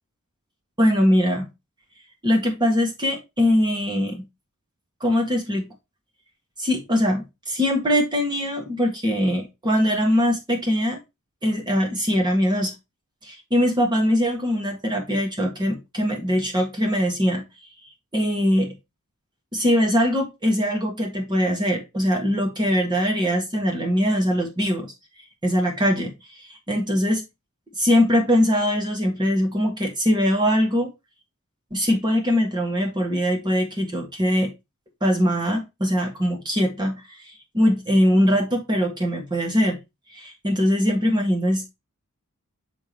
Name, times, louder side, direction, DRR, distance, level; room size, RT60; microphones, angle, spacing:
voice 1, 0.8-1.4 2.2-4.2 5.0-5.7 6.6-11.0 11.4-12.7 13.2-17.4 18.1-18.7 19.5-24.9 25.4-26.1 26.7-27.2 27.8-30.9 31.7-34.5 35.0-37.2 37.5-39.8 40.1-41.8, equal, 20° right, 1.7 m, -22 dB
6.1 x 5.2 x 3.0 m
head